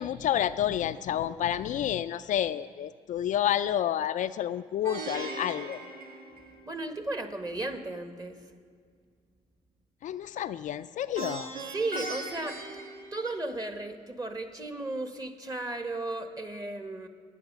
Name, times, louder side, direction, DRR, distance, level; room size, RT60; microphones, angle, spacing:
voice 1, 0.0-5.8 10.0-11.5, left 10 dB, 60° left, 12 dB, 0.4 m, -29 dB
Plucked string instrument, 4.8-7.0 11.1-13.8, right 2 dB, 85° right, 1.3 m, -39 dB
voice 2, 6.6-8.4 11.7-12.7 13.1-17.1, right 2 dB, 25° right, 7 dB, 1.5 m, -35 dB
11.0 x 9.3 x 6.8 m, 2.1 s
supercardioid pair, 65°, 15 cm